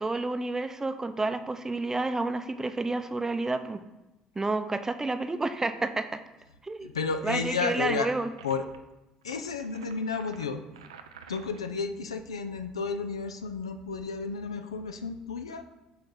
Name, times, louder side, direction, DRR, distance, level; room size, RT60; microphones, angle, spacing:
voice 1, 0.0-3.8 4.4-6.2 6.6-6.9 7.2-8.3, right 2 dB, 15° right, 9 dB, 0.5 m, -30 dB
voice 2, 6.8-8.1 8.4-8.7 9.2-10.6 11.3-15.6, left 5 dB, 90° left, 8 dB, 0.3 m, -32 dB
sound 1, 8.4-8.8 9.2-11.7, right 7 dB, 85° right, 0.3 m, -50 dB
6.7 x 4.0 x 3.7 m, 1.0 s
hypercardioid pair, 60°, 3 cm